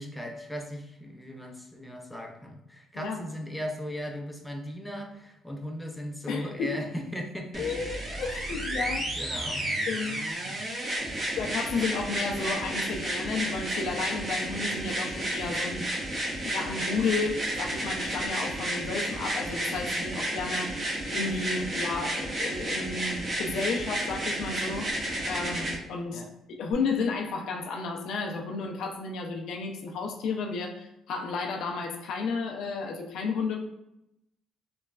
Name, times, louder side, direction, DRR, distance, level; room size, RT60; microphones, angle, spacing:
voice 1, 0.0-7.7 8.5-10.0 10.5-10.6 26.1-26.3, equal, 5° left, 2 dB, 0.4 m, -38 dB
voice 2, 6.3-6.9 7.6-9.1 9.9-10.2 11.3-15.8 16.4-20.9 21.1-24.9 25.2-26.2 26.6-33.6, left 4 dB, 75° left, 2 dB, 0.4 m, -32 dB
sound 1, 7.5-25.8 26.7-26.8, right 1 dB, 45° right, 0.8 m, -32 dB
3.1 x 2.2 x 2.3 m, 0.84 s
cardioid pair, 100°, 0 cm